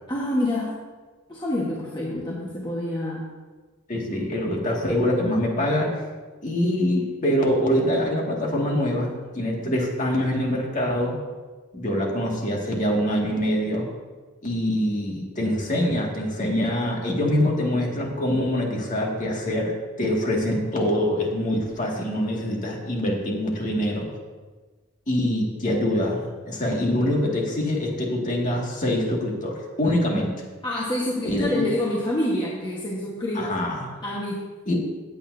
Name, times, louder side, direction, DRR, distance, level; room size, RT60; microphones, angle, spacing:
voice 1, 0.1-0.8 1.3-3.3 9.6-9.8 30.6-33.6 34.0-34.4, left 1 dB, 20° left, -5 dB, 1.3 m, -27 dB
voice 2, 3.9-6.0 6.4-11.2 11.7-13.9 14.4-24.1 25.1-30.4 31.2-31.7 33.3-33.9 34.7-34.8, left 1 dB, 40° left, -1 dB, 2.0 m, -24 dB
15.5 x 8.9 x 2.7 m, 1.3 s
head